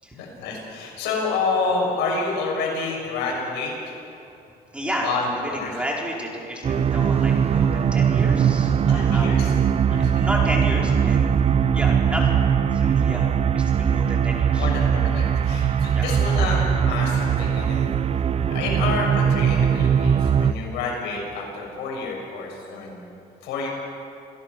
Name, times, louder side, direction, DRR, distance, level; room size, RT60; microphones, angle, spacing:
voice 1, 0.1-3.9 5.0-5.7 8.9-9.5 9.9-10.2 14.5-16.6 16.9-17.9 18.5-23.0 23.4-23.7, left 4 dB, 90° left, -1 dB, 6.9 m, -28 dB
voice 2, 4.7-11.3 11.7-12.3 12.7-13.2 13.5-14.7 15.9-16.1, equal, 5° right, -2 dB, 4.8 m, -31 dB
sound 1, 6.6-20.5, right 7 dB, 40° right, 0.7 m, -20 dB
28.0 x 17.0 x 6.2 m, 2.8 s
cardioid pair, 110°, 17 cm